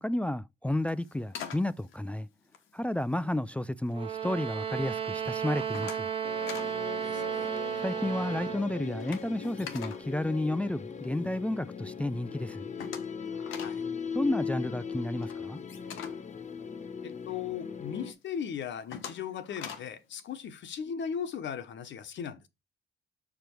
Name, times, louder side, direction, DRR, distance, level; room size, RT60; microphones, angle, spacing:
voice 1, 0.0-2.3 2.7-6.1 7.8-12.7 14.1-15.6, left 1 dB, 5° left, 0.3 m, -31 dB
sound 1, 0.8-3.3 3.7-4.3 4.7-5.0 5.3-6.8 7.0-7.2 7.5-11.2 11.6-11.7 12.0-12.1 12.3-17.3 17.8-17.9 18.4-20.0, left 7 dB, 85° left, 1.3 m, -45 dB
sound 2, 3.9-8.7, right 8 dB, 25° right, 1.1 m, -33 dB
sound 3, 6.2-18.1, left 6 dB, 35° left, 1.0 m, -39 dB
voice 2, 7.0-7.5 13.6-13.8 17.0-22.5, left 7 dB, 65° left, 1.2 m, -37 dB
6.0 x 5.1 x 4.5 m
cardioid pair, 90°, 20 cm